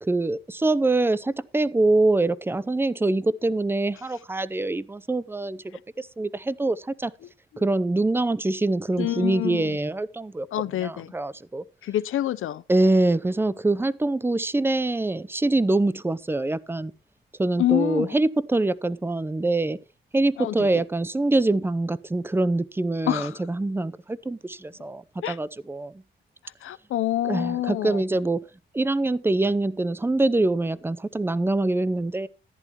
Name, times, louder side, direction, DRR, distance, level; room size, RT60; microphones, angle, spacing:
voice 1, 0.0-7.1 7.6-10.5 10.8-11.6 12.7-16.9 17.4-19.8 20.1-25.9 27.2-28.4 28.7-32.3, right 2 dB, 10° right, 0.6 m, -24 dB
voice 2, 9.0-9.7 10.5-11.1 11.8-12.6 17.6-18.1 20.4-20.7 23.1-23.3 25.2-25.4 26.6-28.0, left 13 dB, 85° left, 0.6 m, -26 dB
14.0 x 10.5 x 2.9 m
cardioid pair, 105°, 21 cm